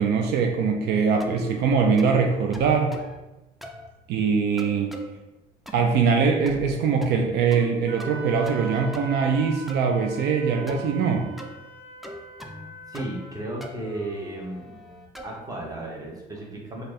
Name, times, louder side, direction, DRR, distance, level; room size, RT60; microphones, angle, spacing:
voice 1, 0.0-2.9 4.1-4.9 5.7-11.3, right 5 dB, 75° right, 3 dB, 0.5 m, -22 dB
sound 1, 1.2-1.6 2.0-2.2 2.5-3.2 3.6-3.9 4.6-5.1 5.7-6.0 6.5-6.8 7.0-7.7 8.0-8.6 8.9-9.8 10.7-10.9 11.4-11.6 12.0-12.7 12.9-13.3 13.6-15.4, equal, ahead, 0.4 m, -40 dB
Wind instrument woodwind instrument, 7.9-13.6, right 3 dB, 40° right, 1.0 m, -42 dB
voice 2, 12.9-14.6 15.2-16.8, right 2 dB, 20° right, -2 dB, 1.0 m, -34 dB
4.2 x 2.6 x 3.2 m, 1.0 s
cardioid pair, 110°, 17 cm